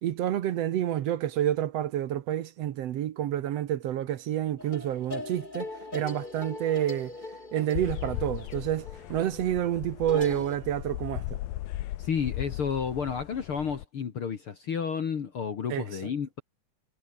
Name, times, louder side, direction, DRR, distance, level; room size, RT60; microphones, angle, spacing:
voice 1, 0.0-7.1 7.5-11.4 15.7-16.1, right 11 dB, 65° right, 1.7 m, -29 dB
sound 1, 4.6-10.6, left 2 dB, 15° left, 2.3 m, -40 dB
Drum kit / Drum, 5.1-9.9, right 4 dB, 80° right, 7.7 m, -61 dB
sound 2, 7.8-13.8, left 15 dB, 85° left, 2.8 m, -37 dB
voice 2, 12.0-16.4, left 7 dB, 45° left, 2.2 m, -31 dB
omnidirectional pair, 3.9 m